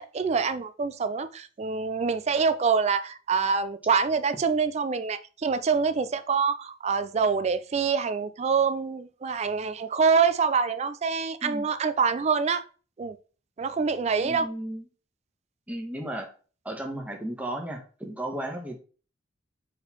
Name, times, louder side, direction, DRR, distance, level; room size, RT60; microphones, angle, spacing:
voice 1, 0.0-12.6 13.0-13.2 13.6-14.5, right 5 dB, 35° right, 0.3 m, -25 dB
voice 2, 14.2-14.9 15.7-16.3 16.6-18.8, right 1 dB, 5° right, 1.2 m, -34 dB
5.1 x 4.3 x 4.2 m
head